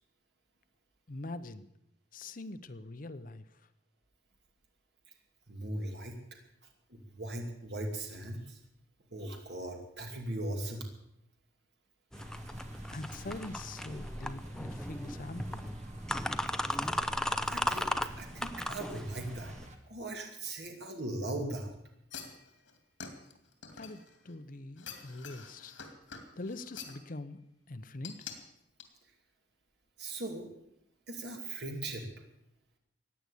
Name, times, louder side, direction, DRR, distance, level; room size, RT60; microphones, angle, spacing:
voice 1, 1.1-1.7 2.1-3.7 12.9-15.8 23.7-25.8 26.3-27.4 27.7-28.3, left 2 dB, 45° left, 12 dB, 0.8 m, -43 dB
voice 2, 5.5-6.1 6.9-8.6 9.1-10.9 17.4-19.5 19.9-21.7 30.0-30.5 31.1-32.1, right 1 dB, 60° right, 2 dB, 2.5 m, -39 dB
sound 1, 12.1-19.7, left 1 dB, 5° left, 0.6 m, -36 dB
sound 2, 12.1-19.8, right 1 dB, 40° right, 1.9 m, -47 dB
sound 3, 22.1-24.3 24.8-27.0 28.0-28.4 28.8-28.9, left 6 dB, 85° left, 2.6 m, -46 dB
16.0 x 9.7 x 8.4 m, 0.77 s
head